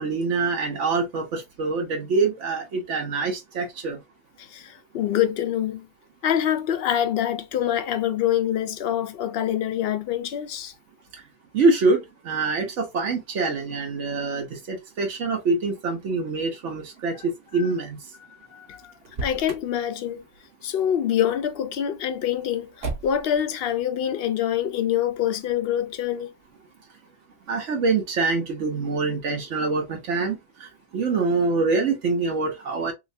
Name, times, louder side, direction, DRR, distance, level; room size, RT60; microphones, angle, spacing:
voice 1, 0.0-4.0 11.5-18.0 27.5-32.9, right 3 dB, 80° right, 1.1 m, -25 dB
voice 2, 4.4-5.9 6.2-10.7 18.5-18.9 19.2-20.2 20.6-26.3, left 10 dB, 65° left, 0.7 m, -25 dB
Motor vehicle (road), 19.0-19.8 22.8-23.4, right 3 dB, 60° right, 1.0 m, -33 dB
3.2 x 2.9 x 2.5 m
omnidirectional pair, 1.2 m